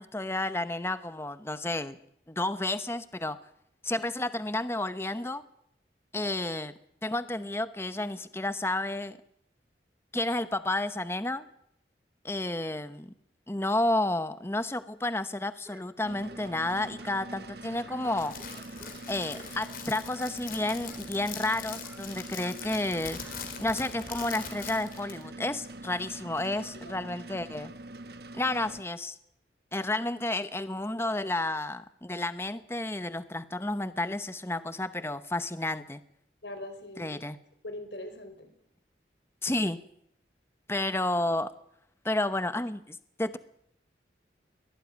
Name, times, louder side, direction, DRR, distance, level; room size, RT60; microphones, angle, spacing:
voice 1, 0.0-2.0 2.3-3.4 3.8-5.4 6.1-6.7 7.0-9.2 10.1-11.4 12.2-13.1 13.5-18.3 19.1-23.2 23.6-27.7 28.3-29.2 29.7-36.0 37.0-37.4 39.4-39.8 40.7-41.5 42.0-43.4, left 2 dB, 15° left, 12 dB, 0.8 m, -31 dB
sound 1, 15.6-17.3 17.6-20.4 20.8-21.3 21.6-22.8 23.1-24.8, right 1 dB, 10° right, 2.6 m, -55 dB
sound 2, 16.0-28.8, right 2 dB, 60° right, 1.1 m, -44 dB
Crackle, 18.1-25.2, left 7 dB, 50° left, 4.0 m, -42 dB
voice 2, 26.4-27.0 36.4-37.2 37.6-38.5, left 1 dB, 85° left, 8 dB, 4.7 m, -42 dB
23.0 x 17.5 x 9.4 m, 0.74 s
head